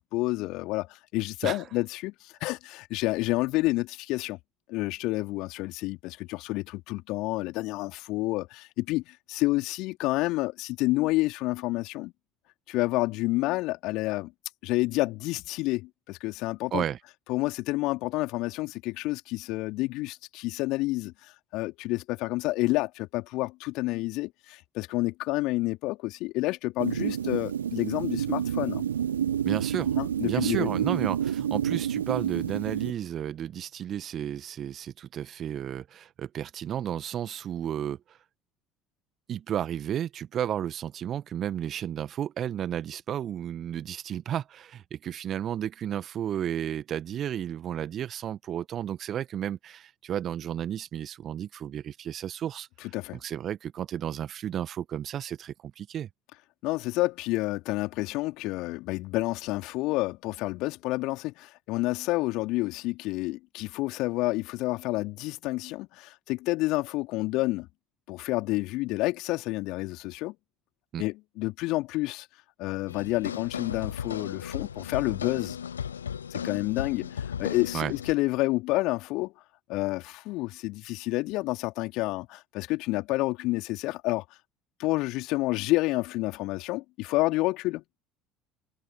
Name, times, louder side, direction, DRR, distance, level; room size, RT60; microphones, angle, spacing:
voice 1, 0.1-4.4 4.7-12.1 12.7-14.3 14.6-16.8 17.3-28.8 30.0-30.7 52.9-53.2 56.6-67.7 68.1-70.3 71.0-72.3 72.6-75.6 76.3-79.3 79.7-84.2 84.8-87.8, left 20 dB, 60° left, 3.2 m, -29 dB
sound 1, 26.8-32.9, right 9 dB, 80° right, 1.1 m, -29 dB
voice 2, 29.5-30.0 30.2-38.2 39.3-52.7 53.1-56.1 70.9-71.0 77.7-77.9, right 10 dB, 45° right, 1.8 m, -33 dB
sound 2, 72.9-78.1, left 8 dB, 80° left, 0.5 m, -35 dB
figure-of-eight pair, 60°, 0 cm